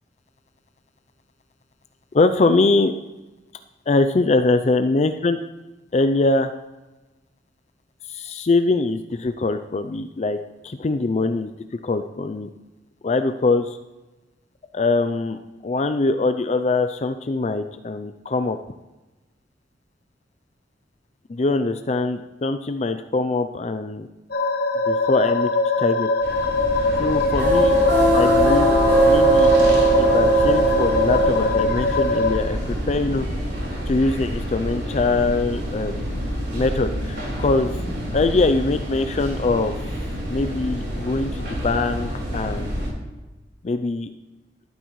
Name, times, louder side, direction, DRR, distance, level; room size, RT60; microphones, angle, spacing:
voice 1, 2.1-2.9 3.9-5.4 5.9-6.5 8.0-10.4 10.6-11.5 11.8-12.5 13.0-13.8 14.7-18.6 21.3-24.1 24.9-25.5 25.8-26.1 27.0-27.8 28.1-28.8 29.1-29.5 30.0-33.3 33.8-36.2 36.5-37.8 38.1-39.7 40.3-42.8 43.6-44.1, left 3 dB, 40° left, 9 dB, 0.4 m, -22 dB
sound 1, 24.3-32.4, left 3 dB, 60° left, 1.2 m, -22 dB
sound 2, 26.2-42.9, right 2 dB, 90° right, 4.5 m, -23 dB
13.5 x 11.5 x 3.1 m, 1.1 s
head